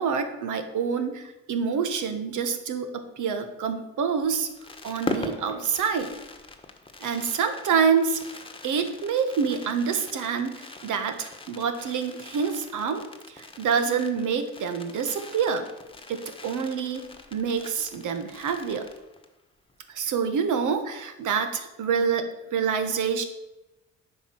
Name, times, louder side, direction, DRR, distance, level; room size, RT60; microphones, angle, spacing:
voice 1, 0.0-4.5 4.8-6.1 7.0-8.2 8.6-13.0 13.3-15.7 16.1-17.0 17.3-18.8 19.9-23.2, right 6 dB, 80° right, 8 dB, 1.5 m, -27 dB
Fireworks, 4.2-19.4 19.7-19.8 20.0-20.3, left 2 dB, 15° left, 1.4 m, -41 dB
10.0 x 5.4 x 7.8 m, 1.0 s
cardioid pair, 90°, 30 cm